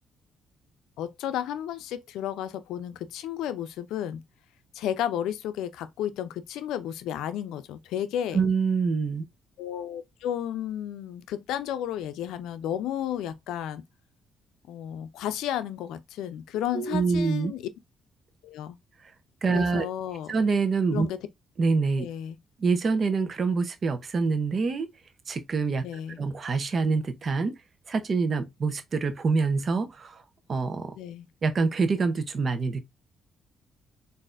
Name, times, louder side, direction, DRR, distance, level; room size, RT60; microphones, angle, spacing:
voice 1, 1.0-4.2 4.7-8.4 9.6-13.8 14.7-17.7 18.4-18.8 19.5-20.3 20.9-21.2 22.0-22.4 25.8-26.2 31.0-31.3, left 10 dB, 90° left, 0.4 m, -32 dB
voice 2, 8.3-9.3 16.7-17.5 19.4-19.9 20.3-21.1 21.6-22.1 22.6-24.9 25.3-25.9 26.2-27.6 27.9-30.2 30.5-31.0 31.4-32.8, right 4 dB, 45° right, 0.8 m, -25 dB
4.0 x 2.6 x 2.5 m
cardioid pair, 90°, 0 cm